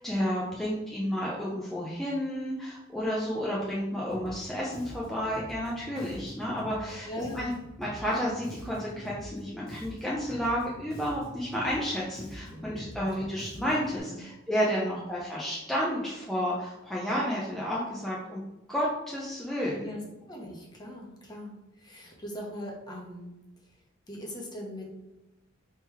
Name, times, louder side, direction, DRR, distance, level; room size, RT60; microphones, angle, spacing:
voice 1, 0.0-7.1 7.4-7.5 7.8-18.4 18.7-19.8, equal, ahead, -6 dB, 0.6 m, -31 dB
Bass guitar, 4.1-14.0, equal, 75° left, 1.1 m, -45 dB
voice 2, 7.0-7.6 12.5-13.3 14.1-14.2 14.8-15.1 19.7-20.0 20.3-23.3 23.6-24.9, left 1 dB, 20° left, -1 dB, 0.9 m, -41 dB
3.6 x 3.0 x 4.6 m, 0.99 s
head